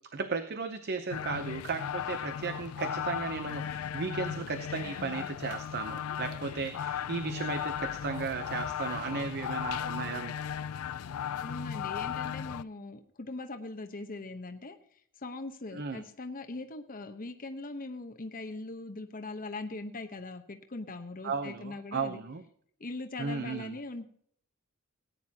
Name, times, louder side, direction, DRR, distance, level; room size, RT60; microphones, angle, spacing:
voice 1, 0.1-10.3 15.7-16.0 21.2-22.4 23.2-23.8, right 4 dB, 50° right, 9 dB, 0.7 m, -35 dB
sound 1, 1.1-12.6, left 9 dB, 85° left, 0.4 m, -36 dB
sound 2, 4.7-11.7, right 2 dB, 25° right, 1.4 m, -53 dB
voice 2, 11.4-14.8 15.2-22.2 22.8-24.1, left 2 dB, 40° left, 5 dB, 1.0 m, -41 dB
18.0 x 9.5 x 2.8 m, 0.62 s
head